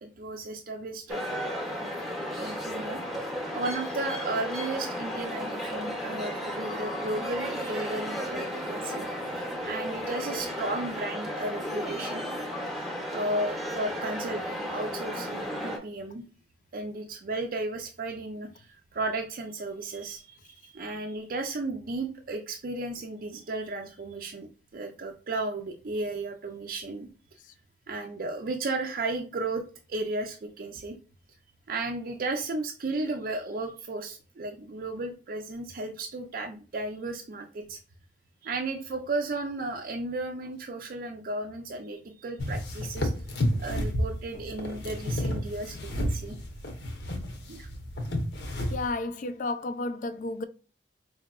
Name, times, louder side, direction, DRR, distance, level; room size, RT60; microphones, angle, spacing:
voice 1, 0.0-1.7 2.4-3.0 3.5-9.1 9.6-12.2 13.1-16.2 16.7-27.1 27.9-29.6 29.9-31.0 31.7-37.8 38.4-43.1 43.6-46.4 47.5-47.7, right 2 dB, 55° right, 0.4 m, -34 dB
sound 1, 1.1-15.8, equal, ahead, 0.8 m, -34 dB
sound 2, 42.4-48.9, equal, 75° left, 0.9 m, -31 dB
voice 2, 48.7-50.4, left 2 dB, 45° left, 0.3 m, -32 dB
4.6 x 2.7 x 2.3 m
head